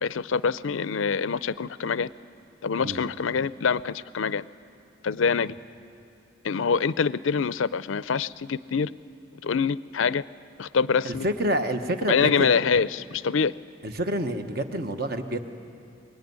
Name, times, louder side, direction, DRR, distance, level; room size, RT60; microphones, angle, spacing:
voice 1, 0.0-2.1 2.6-4.4 5.0-5.6 6.4-8.9 9.4-10.2 10.6-11.3 12.1-13.5, left 5 dB, 75° left, 17 dB, 0.5 m, -25 dB
voice 2, 11.0-12.5 13.8-15.5, right 1 dB, 50° right, 7 dB, 1.3 m, -28 dB
24.5 x 21.5 x 9.6 m, 2.5 s
head